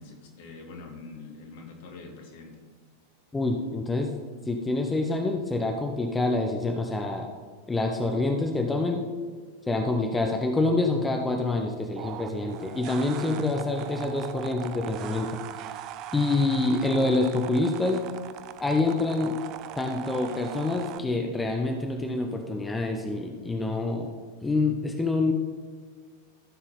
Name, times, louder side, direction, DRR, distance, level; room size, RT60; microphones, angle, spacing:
voice 1, 0.0-2.6, left 3 dB, 50° left, 2 dB, 1.9 m, -44 dB
voice 2, 3.3-4.1 4.5-7.3 7.7-9.0 9.7-15.4 16.1-18.0 18.6-19.4 19.8-24.1 24.4-25.3, left 2 dB, 10° left, 3 dB, 0.9 m, -26 dB
sound 1, 12.0-21.0, right 11 dB, 40° right, 0.5 m, -40 dB
14.5 x 6.3 x 4.0 m, 1.5 s
figure-of-eight pair, 90°, 0 cm